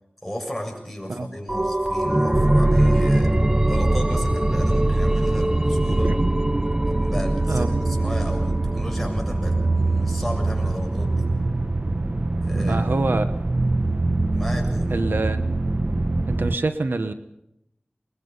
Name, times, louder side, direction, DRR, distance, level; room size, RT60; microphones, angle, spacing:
voice 1, 0.2-3.4 3.7-6.2 6.9-11.3 12.4-12.9 14.3-14.9, equal, 5° left, 1 dB, 7.3 m, -34 dB
sound 1, 1.5-10.8 11.2-11.3, right 1 dB, 20° right, 0.9 m, -24 dB
sound 2, 2.3-16.5, right 2 dB, 40° right, 1.0 m, -24 dB
voice 2, 12.5-13.3 14.9-15.4 16.3-17.1, right 3 dB, 90° right, 10 dB, 1.0 m, -25 dB
24.5 x 21.5 x 5.5 m, 0.81 s
wide cardioid pair, 45°, 3 cm